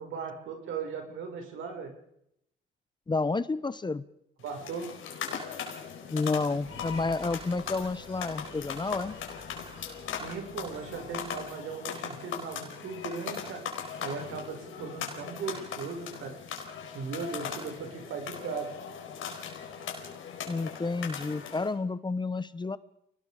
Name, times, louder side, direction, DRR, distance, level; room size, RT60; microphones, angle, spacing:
voice 1, 0.0-1.9 4.4-4.9 10.2-13.6 14.0-16.4 16.8-18.7, right 5 dB, 80° right, 4 dB, 5.6 m, -38 dB
voice 2, 3.1-4.1 6.1-9.2 20.5-22.8, left 3 dB, 20° left, 16 dB, 1.0 m, -30 dB
sound 1, 4.4-21.7, left 7 dB, 80° left, 4.7 m, -39 dB
sound 2, 6.6-11.6, right 2 dB, 30° right, 7.2 m, -52 dB
28.5 x 19.5 x 5.0 m, 0.77 s
cardioid pair, 90°, 20 cm